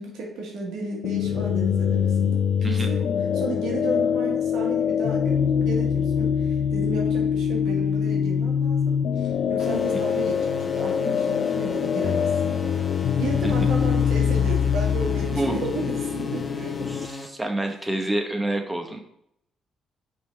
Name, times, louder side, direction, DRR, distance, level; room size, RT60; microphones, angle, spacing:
voice 1, 0.0-3.1 3.3-12.8 13.2-16.7, right 3 dB, 80° right, -1 dB, 1.6 m, -34 dB
sound 1, 1.0-17.1, left 8 dB, 65° left, 0.3 m, -24 dB
sound 2, 9.6-17.3, left 3 dB, 25° left, 0.9 m, -36 dB
voice 2, 16.9-19.0, right 1 dB, 10° right, 3 dB, 1.0 m, -28 dB
5.8 x 3.8 x 4.5 m, 0.73 s
cardioid pair, 90°, 0 cm